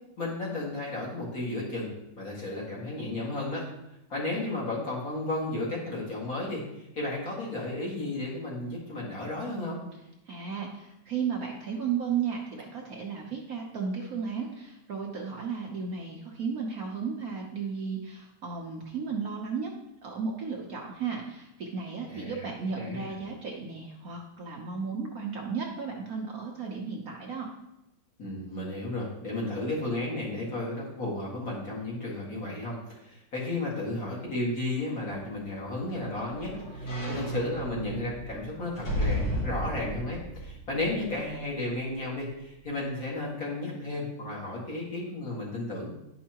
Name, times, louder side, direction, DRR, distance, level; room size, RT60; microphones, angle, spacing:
voice 1, 0.2-1.9 2.2-3.6 4.1-9.8 22.1-22.5 22.8-23.1 28.2-45.9, left 2 dB, 45° left, -5 dB, 2.3 m, -33 dB
voice 2, 10.3-19.7 20.0-27.5, right 6 dB, 55° right, -1 dB, 1.1 m, -34 dB
sound 1, 35.3-41.5 41.9-42.0, equal, 65° left, 3.0 m, -34 dB
10.5 x 5.5 x 2.9 m, 0.89 s
omnidirectional pair, 2.1 m